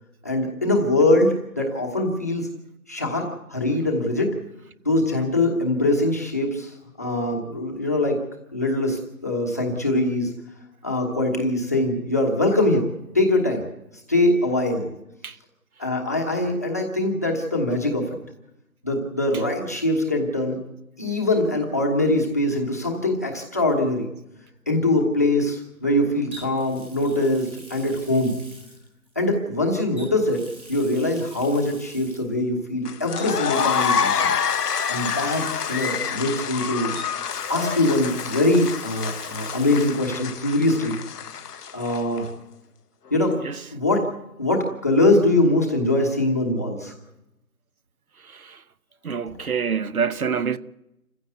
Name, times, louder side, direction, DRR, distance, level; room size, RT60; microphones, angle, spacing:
voice 1, 0.2-2.5 2.9-4.3 4.8-8.2 8.5-10.3 10.8-12.9 13.1-13.6 14.1-14.9 15.8-18.2 18.8-20.6 21.0-24.1 24.7-28.3 29.1-30.4 30.7-34.3 34.9-36.9 37.5-40.9 41.7-42.3 43.1-43.4 43.7-44.1 44.4-46.9, left 1 dB, 10° left, 1.1 m, -22 dB
Water tap faucet, 23.3-23.6 26.3-29.4 29.9-32.4 33.1-36.6 36.9-40.1 40.4-40.5 42.1-42.2, right 1 dB, 5° right, 1.5 m, -46 dB
sound 1, 32.9-42.2, left 7 dB, 75° left, 0.8 m, -27 dB
voice 2, 48.2-48.6 49.0-50.6, right 6 dB, 65° right, 1.0 m, -26 dB
27.5 x 15.5 x 8.1 m
hypercardioid pair, 175°, 47 cm